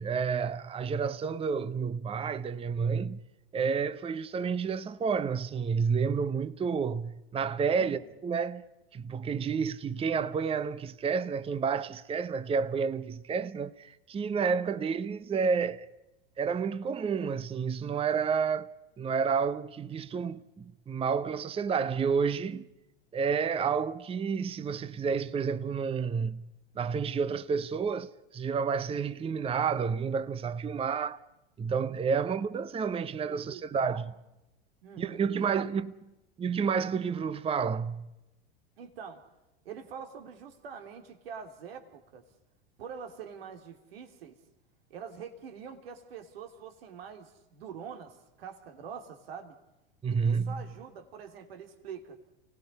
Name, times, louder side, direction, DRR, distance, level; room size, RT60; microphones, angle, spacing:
voice 1, 0.0-3.2 3.5-8.6 8.9-15.9 16.4-18.7 19.0-22.6 23.1-26.4 26.8-31.2 31.6-34.0 35.0-35.9 36.4-38.0 50.0-50.5, right 6 dB, 20° right, 0.8 m, -30 dB
voice 2, 33.3-34.1 34.8-35.7 38.8-39.2 39.6-42.2 42.8-44.4 44.9-49.6 50.1-52.2, right 7 dB, 75° right, 3.1 m, -45 dB
29.5 x 19.0 x 5.5 m
hypercardioid pair, 95°, 30 cm